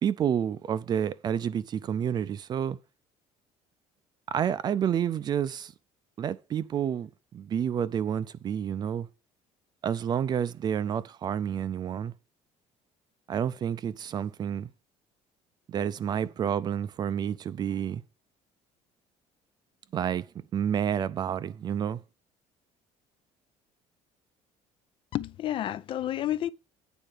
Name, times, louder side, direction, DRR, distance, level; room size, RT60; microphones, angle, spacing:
voice 1, 0.0-2.8 4.3-5.7 6.2-9.1 9.8-12.1 13.3-14.7 15.7-18.0 19.9-22.0, right 8 dB, 35° right, 0.5 m, -29 dB
voice 2, 25.1-26.5, left 12 dB, 40° left, 0.4 m, -30 dB
9.1 x 4.4 x 6.6 m
cardioid pair, 160°, 13 cm